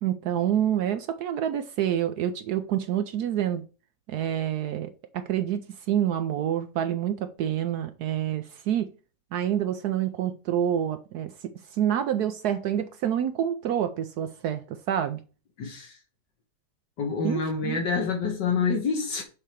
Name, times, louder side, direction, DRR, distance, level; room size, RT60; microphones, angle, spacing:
voice 1, 0.0-3.6 4.1-8.9 9.3-11.3 11.7-15.2 17.2-17.8, right 10 dB, 70° right, 1.1 m, -27 dB
voice 2, 15.6-16.0 17.0-19.2, left 5 dB, 75° left, 1.9 m, -27 dB
6.6 x 4.4 x 5.0 m
omnidirectional pair, 1.9 m